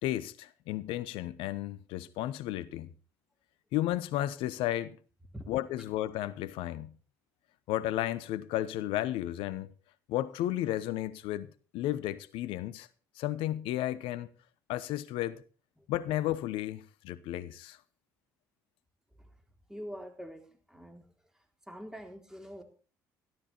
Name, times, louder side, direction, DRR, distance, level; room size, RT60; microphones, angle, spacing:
voice 1, 0.0-2.9 3.7-5.0 5.5-6.9 7.7-9.7 10.1-11.5 11.7-12.9 13.2-14.3 14.7-15.4 15.9-17.8, left 14 dB, 70° left, 0.9 m, -33 dB
voice 2, 19.7-21.1 21.7-22.6, equal, 5° right, 3.8 m, -44 dB
13.5 x 12.5 x 4.4 m
hypercardioid pair, 55°, 9 cm